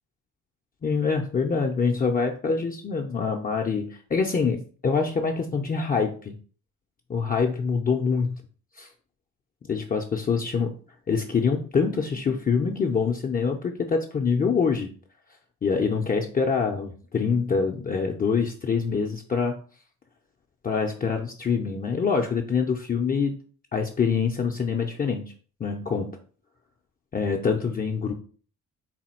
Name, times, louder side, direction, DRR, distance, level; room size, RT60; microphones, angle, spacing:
voice 1, 0.8-6.4 7.1-8.4 8.8-8.9 9.7-10.7 11.1-14.9 15.6-19.6 20.6-23.3 23.7-25.3 25.6-26.2 27.1-28.1, left 5 dB, 30° left, 2 dB, 0.5 m, -25 dB
4.1 x 2.2 x 4.2 m, 0.41 s
cardioid pair, 90°, 30 cm